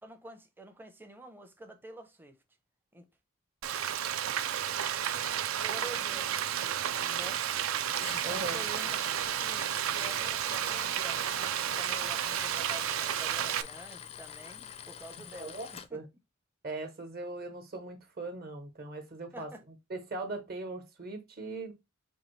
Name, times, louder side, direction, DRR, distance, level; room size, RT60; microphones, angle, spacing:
voice 1, 0.0-2.4 2.9-3.1 5.3-6.5 7.0-7.5 8.1-16.0 19.3-19.6, right 1 dB, 10° right, 0.6 m, -48 dB
Frying (food), 3.6-13.6, right 10 dB, 65° right, 0.4 m, -32 dB
Tools, 7.9-15.9, left 7 dB, 30° left, 0.4 m, -47 dB
voice 2, 8.2-8.7 15.4-16.0 16.6-19.5 19.9-21.7, right 2 dB, 45° right, 1.1 m, -39 dB
5.4 x 2.7 x 3.1 m
head